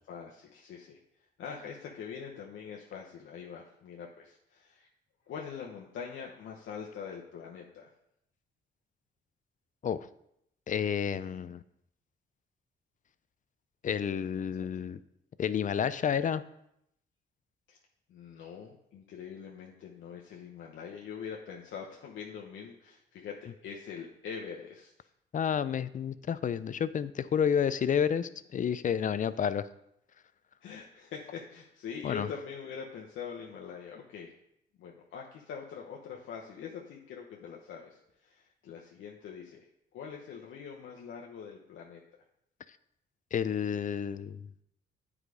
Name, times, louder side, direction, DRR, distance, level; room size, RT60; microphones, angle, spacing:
voice 1, 0.1-1.0 1.4-4.9 5.3-7.9 14.4-14.7 17.7-17.8 18.1-25.1 30.6-34.3 34.8-39.6 39.9-42.0, left 6 dB, 75° left, -1 dB, 1.0 m, -43 dB
voice 2, 10.7-11.6 13.8-15.0 15.4-16.4 25.3-29.7 32.0-32.3 43.3-44.5, left 8 dB, 40° left, 15 dB, 0.5 m, -30 dB
9.1 x 4.9 x 4.9 m, 0.77 s
cardioid pair, 90°, 20 cm